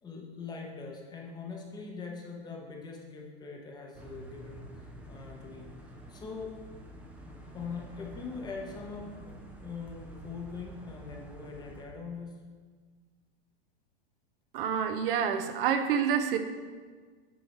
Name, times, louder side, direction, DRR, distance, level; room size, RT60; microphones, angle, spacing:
voice 1, 0.0-6.5 7.5-12.4, left 4 dB, 15° left, 0 dB, 0.8 m, -42 dB
sound 1, 3.9-11.8, right 1 dB, 5° right, 0.5 m, -48 dB
voice 2, 14.5-16.4, right 7 dB, 60° right, 7 dB, 0.7 m, -28 dB
8.4 x 4.5 x 4.3 m, 1.5 s
supercardioid pair, 150°, 31 cm